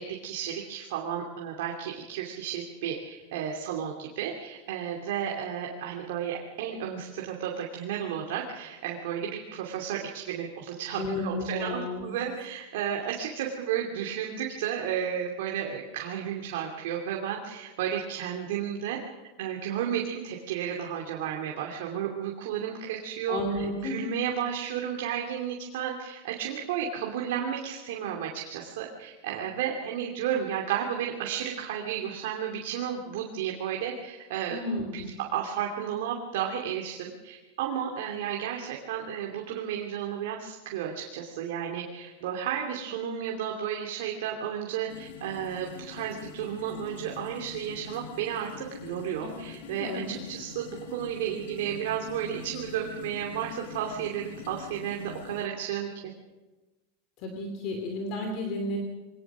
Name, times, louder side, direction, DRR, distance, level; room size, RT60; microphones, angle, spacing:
voice 1, 0.0-19.0 19.4-34.6 34.9-55.9, right 9 dB, 60° right, 0 dB, 2.7 m, -33 dB
voice 2, 11.0-12.1 23.3-24.0 34.5-35.2 49.2-49.3 49.8-50.1 57.2-58.8, left 1 dB, 35° left, 3 dB, 2.8 m, -32 dB
sound 1, 44.9-55.5, left 8 dB, 70° left, 1.7 m, -45 dB
24.0 x 19.0 x 6.2 m, 1.2 s
supercardioid pair, 170°, 0 cm